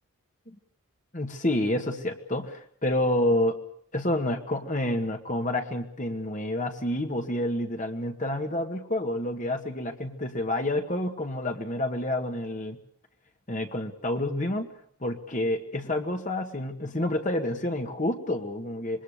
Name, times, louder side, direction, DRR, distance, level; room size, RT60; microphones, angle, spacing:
voice 1, 1.1-3.6 3.9-12.8 13.5-14.7 15.0-19.0, left 1 dB, 35° left, 4 dB, 2.0 m, -29 dB
26.0 x 22.0 x 6.7 m, 0.63 s
head